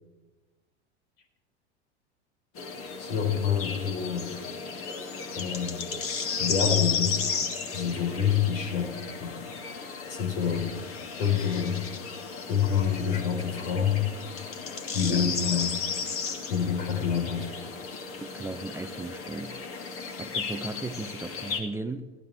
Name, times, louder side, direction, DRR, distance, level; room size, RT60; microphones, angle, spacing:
sound 1, 2.6-21.6, left 5 dB, 40° left, 2.5 m, -34 dB
voice 1, 3.0-4.3 5.3-5.8 6.4-7.1 7.7-8.9 9.2-9.5 10.0-10.7 11.2-11.8 12.5-14.0 14.9-15.8 16.5-17.5, left 8 dB, 65° left, 3 dB, 4.2 m, -27 dB
voice 2, 18.2-19.6 20.2-22.1, right 3 dB, 10° right, 9 dB, 0.6 m, -36 dB
23.0 x 15.5 x 3.4 m, 1.2 s
hypercardioid pair, 90°, 34 cm